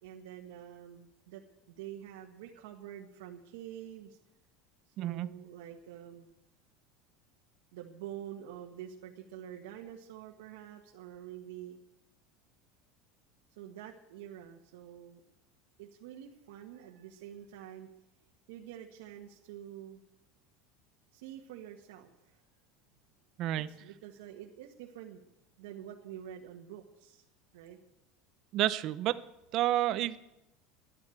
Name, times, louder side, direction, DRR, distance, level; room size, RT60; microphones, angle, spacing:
voice 1, 0.0-4.2 4.9-6.3 7.7-11.8 13.5-15.2 15.8-17.9 18.5-20.0 21.1-22.4 23.5-25.2 25.6-27.2 27.5-27.8, right 10 dB, 85° right, 0 dB, 1.5 m, -47 dB
voice 2, 5.0-5.3 23.4-23.7 28.5-29.1 29.5-30.2, right 13 dB, 35° right, 14 dB, 0.6 m, -29 dB
11.0 x 11.0 x 9.1 m, 0.92 s
cardioid pair, 180°, 0 cm